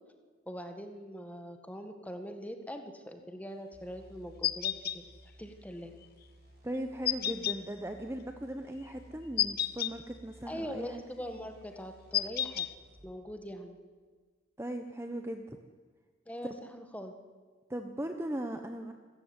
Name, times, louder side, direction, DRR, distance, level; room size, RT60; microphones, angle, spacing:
voice 1, 0.5-5.0 5.4-5.9 10.4-12.7 13.0-13.8 16.3-17.1, equal, 5° left, 6 dB, 1.7 m, -42 dB
sound 1, 3.7-13.2, equal, 50° right, 4.9 m, -58 dB
sound 2, 4.4-5.0 7.0-7.6 9.4-9.9 12.1-12.7, left 11 dB, 50° left, 0.8 m, -30 dB
voice 2, 6.6-11.0 14.6-15.6 17.7-18.9, right 1 dB, 15° right, 6 dB, 1.0 m, -38 dB
28.0 x 14.0 x 9.8 m, 1.5 s
head